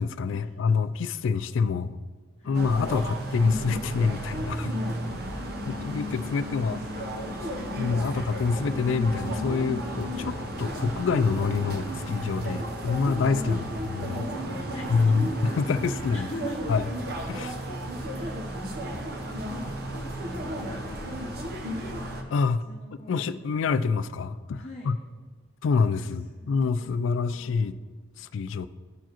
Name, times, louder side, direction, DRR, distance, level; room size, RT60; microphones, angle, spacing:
voice 1, 0.0-2.0 2.5-4.8 5.7-6.8 7.8-14.3 14.9-15.3 15.6-16.3 16.7-16.8 17.3-17.5 22.3-22.6 23.1-25.0 25.6-27.7 28.2-28.7, left 5 dB, 80° left, 13 dB, 0.3 m, -26 dB
voice 2, 2.4-2.7 5.1-8.3 13.5-15.6 16.1-16.8 17.4-21.4 22.6-23.6 24.6-24.9 26.1-27.5, left 1 dB, 35° left, -4 dB, 0.9 m, -44 dB
sound 1, 2.5-22.2, equal, 55° right, 0.8 m, -33 dB
13.5 x 4.6 x 3.0 m, 1.5 s
head